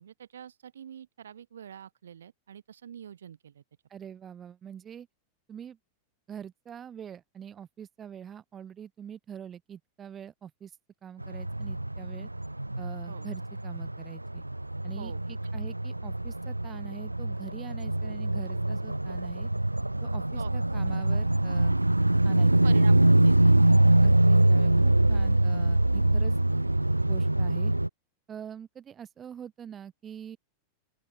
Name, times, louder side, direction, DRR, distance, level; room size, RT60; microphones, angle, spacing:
voice 1, 0.0-3.6 13.1-13.3 14.9-15.5 20.3-20.5 20.9-21.0 22.6-23.7 24.0-24.5, right 9 dB, 65° right, 4.3 m, -46 dB
voice 2, 3.9-5.1 5.5-5.8 6.3-10.7 11.0-12.3 12.8-14.4 14.8-19.5 20.0-21.7 22.2-22.9 24.0-26.3 27.0-27.7 28.3-30.4, right 8 dB, 25° right, 5.7 m, -44 dB
sound 1, 11.2-27.9, right 1 dB, 85° right, 0.5 m, -24 dB
open air
figure-of-eight pair, 90°, 0 cm